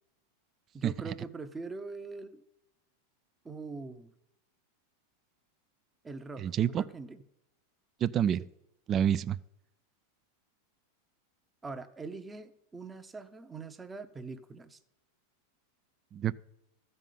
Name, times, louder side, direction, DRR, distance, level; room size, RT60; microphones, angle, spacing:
voice 1, 0.7-2.4 3.4-4.1 6.0-7.2 8.4-8.5 11.6-14.8, right 4 dB, 15° right, 0.8 m, -43 dB
voice 2, 6.4-6.8 8.0-8.4 8.9-9.4 16.1-16.3, right 9 dB, 30° right, 0.3 m, -27 dB
13.5 x 5.4 x 9.2 m
supercardioid pair, 130°, 0 cm